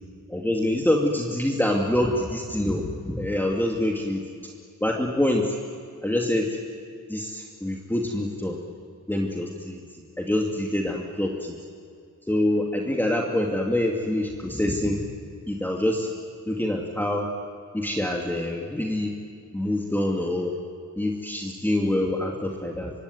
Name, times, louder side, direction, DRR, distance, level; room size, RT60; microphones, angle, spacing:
voice 1, 0.3-4.2 4.8-5.6 6.0-6.5 7.1-8.6 9.1-9.8 10.2-11.5 12.3-15.0 15.5-16.1 16.5-17.3 17.7-19.1 19.5-20.5 21.0-22.9, left 1 dB, 5° left, -1 dB, 2.5 m, -25 dB
25.0 x 24.5 x 9.6 m, 2.3 s
wide cardioid pair, 125°, 31 cm